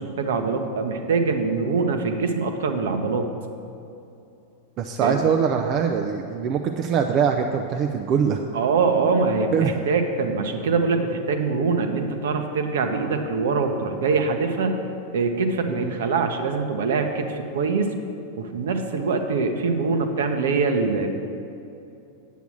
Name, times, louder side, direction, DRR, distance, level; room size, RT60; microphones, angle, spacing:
voice 1, 0.0-3.3 5.0-5.2 8.5-14.8 15.1-17.9 18.4-21.1, right 4 dB, 60° right, 6 dB, 0.9 m, -23 dB
voice 2, 4.8-8.4 9.5-9.7 15.7-15.9, right 7 dB, 35° right, 4 dB, 0.5 m, -23 dB
9.3 x 8.1 x 6.2 m, 2.8 s
figure-of-eight pair, 90°, 0 cm